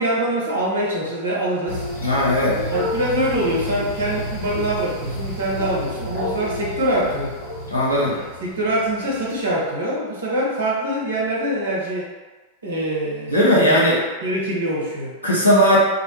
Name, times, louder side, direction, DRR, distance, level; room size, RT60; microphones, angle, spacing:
voice 1, 0.0-1.8 2.7-7.3 8.1-12.1 12.6-14.0 14.2-15.1, right 1 dB, 70° right, -4 dB, 0.7 m, -24 dB
sound 1, 1.7-9.3, left 1 dB, 55° left, 1.2 m, -30 dB
voice 2, 2.0-2.6 7.7-8.2 13.3-14.0 15.2-15.8, equal, 80° left, -6 dB, 0.7 m, -17 dB
2.5 x 2.1 x 2.7 m, 1.3 s
figure-of-eight pair, 90°, 0 cm